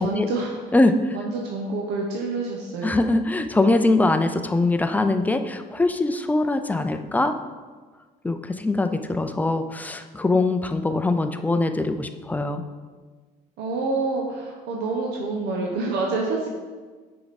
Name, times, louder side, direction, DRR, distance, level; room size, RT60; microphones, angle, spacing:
voice 1, 0.0-0.7 1.1-2.9 13.6-16.5, right 3 dB, 80° right, -1 dB, 0.8 m, -27 dB
voice 2, 0.7-1.2 2.8-7.3 8.2-12.6, left 2 dB, 10° left, 8 dB, 0.4 m, -22 dB
6.4 x 4.8 x 4.1 m, 1.4 s
cardioid pair, 110°, 17 cm